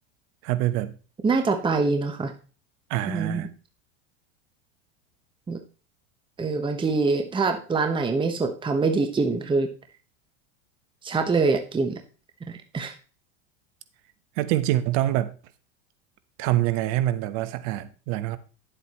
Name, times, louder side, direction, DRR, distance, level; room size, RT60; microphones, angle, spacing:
voice 1, 0.4-0.9 2.9-3.5 14.4-15.3 16.4-18.4, right 14 dB, 60° right, 1.0 m, -25 dB
voice 2, 1.2-2.3 3.1-3.5 5.5-5.6 6.4-9.7 11.0-12.0 12.5-12.9, right 4 dB, 15° right, 1.1 m, -24 dB
10.5 x 7.8 x 3.0 m
supercardioid pair, 110°, 35 cm